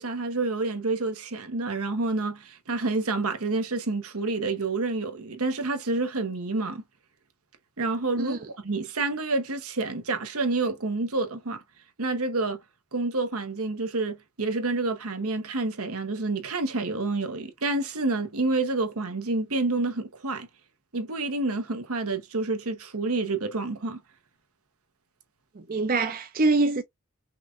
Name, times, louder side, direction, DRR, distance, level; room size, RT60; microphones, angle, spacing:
voice 1, 0.0-6.8 7.8-11.6 12.0-12.6 12.9-20.5 20.9-24.0, right 3 dB, 75° right, 1.1 m, -28 dB
voice 2, 25.6-26.8, right 3 dB, 40° right, 0.5 m, -24 dB
5.7 x 2.5 x 2.5 m
head